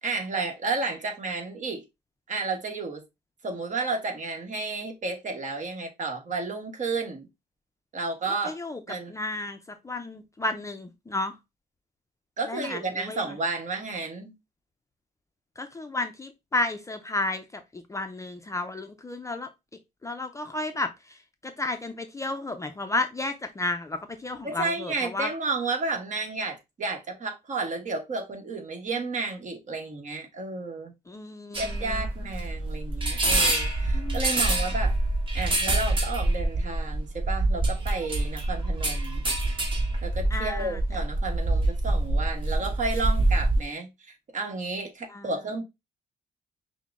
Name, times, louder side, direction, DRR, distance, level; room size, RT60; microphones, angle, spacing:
voice 1, 0.0-1.8 2.3-3.0 3.4-7.3 7.9-8.6 8.9-9.1 12.4-14.3 24.4-30.9 31.5-34.9 35.3-39.2 40.0-45.6, right 3 dB, 45° right, 1.2 m, -32 dB
voice 2, 8.4-8.8 9.1-9.6 9.8-11.3 12.5-13.2 15.6-19.5 20.0-20.9 21.4-25.3 31.1-32.1 33.9-34.2 40.3-40.8 45.1-45.3, left 2 dB, 15° left, 0.4 m, -32 dB
sound 1, 31.5-43.6, right 2 dB, 30° right, 1.3 m, -26 dB
5.6 x 2.1 x 3.6 m
cardioid pair, 125°, 18 cm